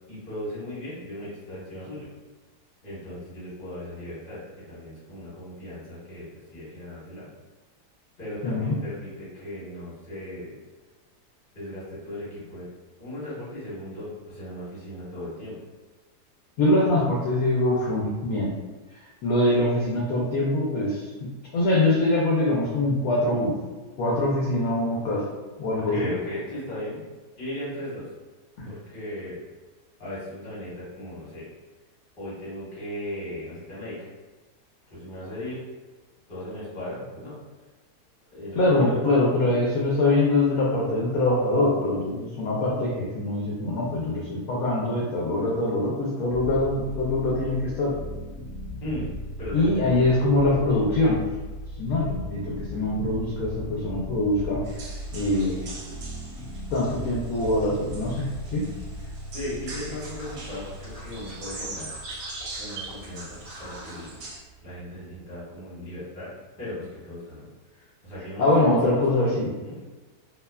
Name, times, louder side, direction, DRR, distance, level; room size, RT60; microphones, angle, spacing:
voice 1, 0.1-2.1 2.8-7.3 8.2-10.6 11.5-12.7 13.0-15.6 25.7-27.0 27.4-28.1 28.6-29.4 30.0-31.5 32.1-34.1 34.9-35.6 36.3-37.4 38.3-39.5 48.8-49.1 49.4-50.1 59.0-61.9 62.5-64.2 64.6-69.8, left 1 dB, 35° left, -9 dB, 1.2 m, -37 dB
voice 2, 8.4-8.7 16.6-18.5 19.2-23.6 24.0-25.2 25.6-26.1 28.6-28.7 38.6-47.9 49.5-51.2 51.8-54.6 55.1-55.7 56.7-58.7 68.4-69.5, left 2 dB, 70° left, -5 dB, 0.9 m, -23 dB
sound 1, 46.2-65.3, equal, 60° right, 0.9 m, -38 dB
sound 2, 54.7-64.4, right 2 dB, 80° right, 1.2 m, -42 dB
Scratching (performance technique), 59.7-64.1, right 1 dB, 35° right, 0.6 m, -45 dB
2.8 x 2.1 x 2.2 m, 1.3 s
omnidirectional pair, 1.8 m